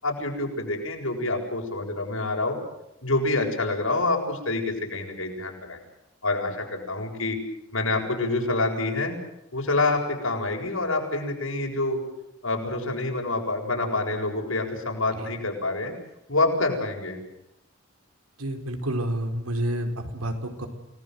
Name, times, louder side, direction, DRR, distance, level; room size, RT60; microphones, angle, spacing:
voice 1, 0.0-2.6 3.0-5.8 6.2-7.4 7.7-9.2 9.5-12.0 12.4-15.9 16.3-17.2, left 2 dB, 75° left, 1 dB, 7.6 m, -27 dB
voice 2, 18.4-20.7, right 1 dB, 90° right, 5 dB, 4.5 m, -29 dB
29.0 x 20.0 x 8.0 m, 0.84 s
head